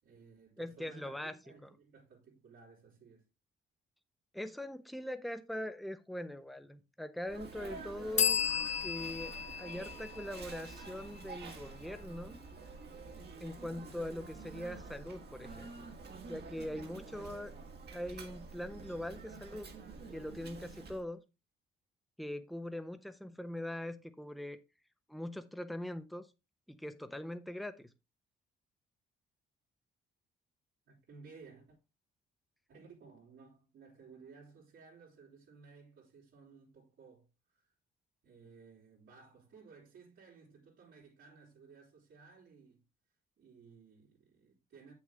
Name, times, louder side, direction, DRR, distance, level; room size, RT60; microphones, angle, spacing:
voice 1, 0.0-3.3 30.8-31.8 32.7-37.7 38.2-42.8 43.4-44.9, right 5 dB, 75° right, 3.4 m, -57 dB
voice 2, 0.6-1.4 1.6-1.7 4.3-8.5 8.8-12.4 13.4-15.9 16.2-17.5 17.9-19.7 20.1-21.2 22.2-24.6 25.1-26.3 26.7-27.9, left 1 dB, ahead, 0.9 m, -42 dB
Sneeze, 7.3-21.0, right 4 dB, 55° right, 1.8 m, -48 dB
sound 1, 8.2-11.7, left 8 dB, 35° left, 0.5 m, -35 dB
7.8 x 6.7 x 3.5 m
cardioid pair, 90°, 20 cm